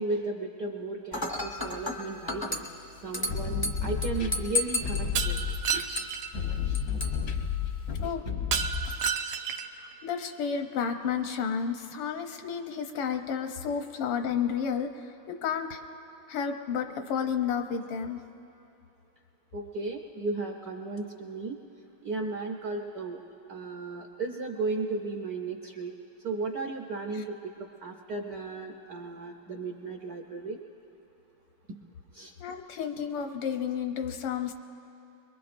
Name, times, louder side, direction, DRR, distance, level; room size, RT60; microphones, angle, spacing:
voice 1, 0.0-2.7 3.0-5.4 6.6-7.1 8.0-8.1 19.5-21.6 22.0-23.2 23.5-25.9 26.2-30.6 32.1-32.3, right 3 dB, 65° right, 2 dB, 0.9 m, -35 dB
Dishes pots and pans / Glass, 1.1-8.1, left 2 dB, 30° left, 0.3 m, -35 dB
sound 1, 3.1-9.0, left 6 dB, 60° left, 0.7 m, -32 dB
Shatter, 5.2-6.3 8.5-9.8, right 7 dB, 80° right, 1.4 m, -31 dB
voice 2, 9.8-15.8 16.3-18.2 32.4-34.5, left 7 dB, 80° left, 6 dB, 1.7 m, -31 dB
23.5 x 22.5 x 2.6 m, 2.7 s
omnidirectional pair, 2.4 m